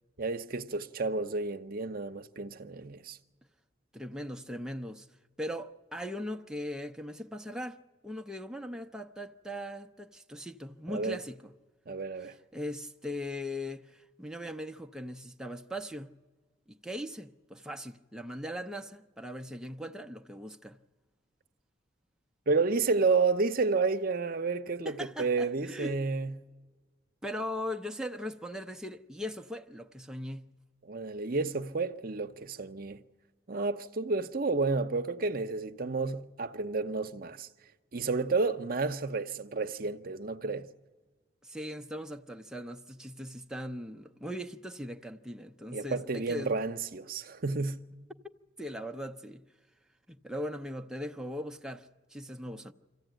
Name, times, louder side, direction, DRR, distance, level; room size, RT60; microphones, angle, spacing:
voice 1, 0.2-3.2 10.9-11.2 11.9-12.3 22.5-26.4 30.8-33.0 33.5-37.5 37.9-40.7 45.7-47.9, right 4 dB, 50° right, 0.8 m, -31 dB
voice 2, 3.9-5.1 5.4-7.8 8.0-11.5 12.2-16.1 16.7-20.8 24.8-26.0 27.2-30.5 41.4-46.5 48.6-49.4 50.1-52.7, equal, 5° right, 0.6 m, -39 dB
25.5 x 15.0 x 9.1 m
head